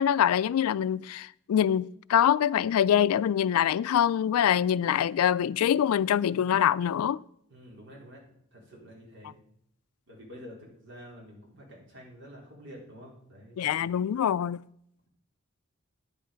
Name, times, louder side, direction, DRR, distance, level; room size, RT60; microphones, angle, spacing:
voice 1, 0.0-7.2 13.6-14.6, left 9 dB, 85° left, 0.3 m, -24 dB
voice 2, 7.5-8.2 8.5-9.4 10.1-14.0, equal, 55° right, 3.8 m, -48 dB
9.7 x 8.0 x 5.1 m
head